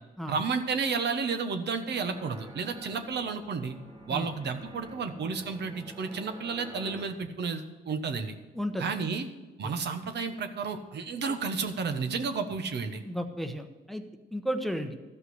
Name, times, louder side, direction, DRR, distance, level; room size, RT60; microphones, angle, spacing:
voice 1, 0.3-3.7 4.1-8.4 8.8-9.3 9.6-13.0, right 5 dB, 60° right, 8 dB, 1.1 m, -32 dB
sound 1, 1.9-7.1, equal, 20° right, 1.9 m, -48 dB
voice 2, 8.5-8.9 9.6-9.7 13.0-14.0 14.3-14.9, equal, ahead, 6 dB, 0.9 m, -33 dB
13.0 x 5.6 x 7.7 m, 1.2 s
cardioid pair, 90°, 20 cm